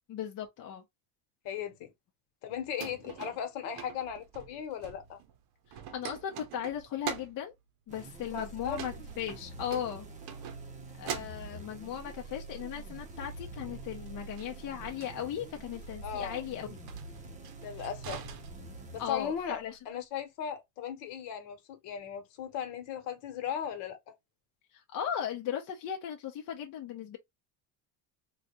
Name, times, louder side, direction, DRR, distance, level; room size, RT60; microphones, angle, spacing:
voice 1, 0.1-0.8 2.8-2.9 3.2-3.3 5.7-7.5 7.9-10.1 11.0-16.8 19.0-19.8 24.7-27.2, left 9 dB, 45° left, 0.8 m, -37 dB
voice 2, 1.4-1.9 2.4-5.2 8.2-8.8 16.0-16.4 17.6-18.2 18.9-19.6 19.9-24.2, left 8 dB, 65° left, 1.3 m, -37 dB
sound 1, 2.5-5.4 5.6-7.5 8.7-10.7 11.0-11.9 14.1-15.1 15.7-15.9 16.8-19.1, right 9 dB, 55° right, 0.8 m, -44 dB
sound 2, 7.9-19.8, right 3 dB, 15° right, 0.7 m, -46 dB
3.9 x 2.3 x 2.9 m
cardioid pair, 140°, 45 cm